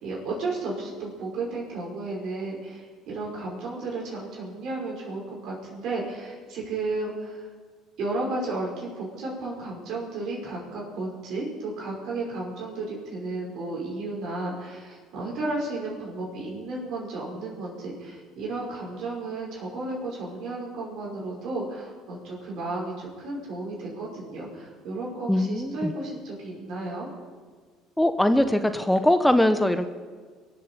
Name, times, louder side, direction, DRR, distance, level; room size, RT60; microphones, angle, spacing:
voice 1, 0.0-7.5 8.0-27.1, right 2 dB, 60° right, -2 dB, 5.7 m, -33 dB
voice 2, 25.3-25.9 28.0-29.9, left 1 dB, 5° left, 9 dB, 1.1 m, -21 dB
22.0 x 7.8 x 7.4 m, 1.5 s
hypercardioid pair, 70°, 0 cm